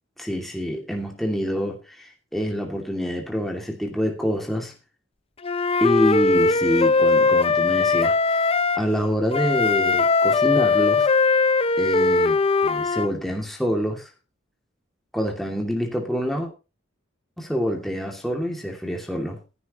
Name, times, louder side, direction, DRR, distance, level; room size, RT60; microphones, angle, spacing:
voice 1, 0.2-4.7 5.8-8.5 8.7-11.1 11.8-14.1 15.1-16.5 17.4-19.4, equal, ahead, 1 dB, 2.5 m, -26 dB
Wind instrument woodwind instrument, 5.4-8.8 9.3-13.1, left 4 dB, 30° left, 0.6 m, -20 dB
16.0 x 11.0 x 3.0 m, 0.31 s
head